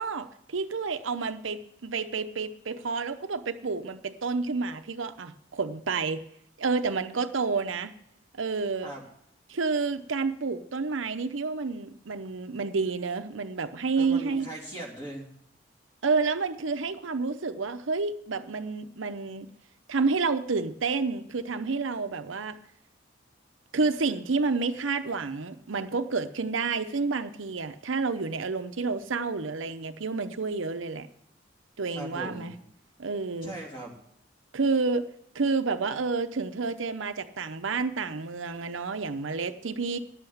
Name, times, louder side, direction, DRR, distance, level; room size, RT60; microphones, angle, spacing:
voice 1, 0.0-6.2 6.6-7.9 8.4-8.9 9.5-14.5 16.0-19.5 19.9-22.6 23.7-31.1 31.8-32.5 33.0-33.5 34.5-35.1 35.3-40.0, right 4 dB, 85° right, 9 dB, 0.8 m, -29 dB
voice 2, 14.0-15.3 31.9-32.5 33.4-33.9, right 1 dB, 25° left, -1 dB, 3.0 m, -39 dB
11.0 x 7.8 x 7.2 m, 0.74 s
head